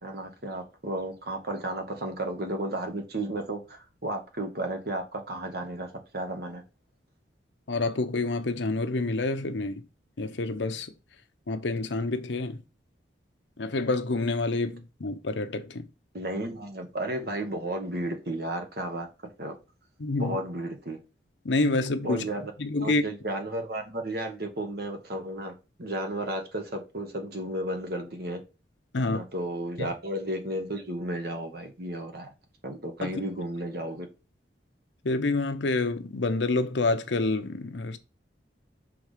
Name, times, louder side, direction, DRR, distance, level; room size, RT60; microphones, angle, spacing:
voice 1, 0.0-6.6 16.1-19.1 19.4-19.6 20.2-21.0 22.0-22.5 22.8-28.4 28.9-32.3 32.6-34.1, right 1 dB, 55° right, 1.5 m, -33 dB
voice 2, 7.7-9.8 10.2-10.9 11.5-12.6 13.6-15.9 20.0-20.4 21.4-22.2 22.6-23.0 28.9-29.2 29.8-29.9 33.0-33.2 35.0-38.0, left 2 dB, 75° left, 0.8 m, -28 dB
6.1 x 3.6 x 5.0 m
head